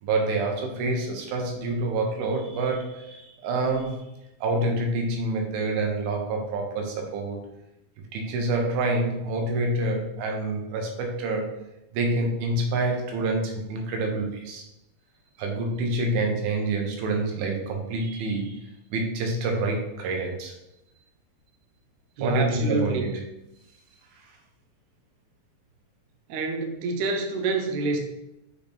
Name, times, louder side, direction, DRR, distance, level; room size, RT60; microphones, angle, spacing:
voice 1, 0.0-4.0 4.4-7.5 8.1-11.5 11.9-14.7 15.4-20.5 22.2-23.1 24.2-24.4, right 2 dB, 90° right, 2 dB, 2.9 m, -27 dB
voice 2, 22.2-23.0 26.3-28.0, right 3 dB, 70° right, 3 dB, 1.9 m, -27 dB
6.5 x 3.5 x 4.3 m, 0.87 s
omnidirectional pair, 4.1 m